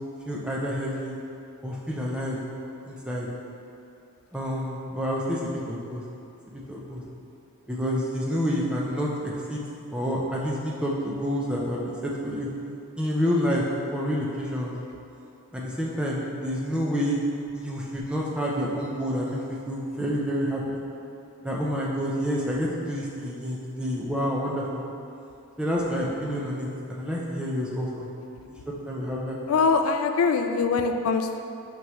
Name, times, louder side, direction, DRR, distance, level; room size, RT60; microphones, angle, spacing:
voice 1, 0.3-1.1 1.6-2.4 2.8-3.3 4.3-6.0 6.5-7.0 7.7-12.5 13.0-13.6 13.9-14.7 15.5-17.2 17.5-20.8 21.4-24.8 25.6-28.1 28.4-28.6 28.9-29.4, equal, 5° right, -4 dB, 0.6 m, -28 dB
voice 2, 29.5-31.4, left 4 dB, 75° left, 7 dB, 0.3 m, -23 dB
6.2 x 5.1 x 3.1 m, 2.7 s
head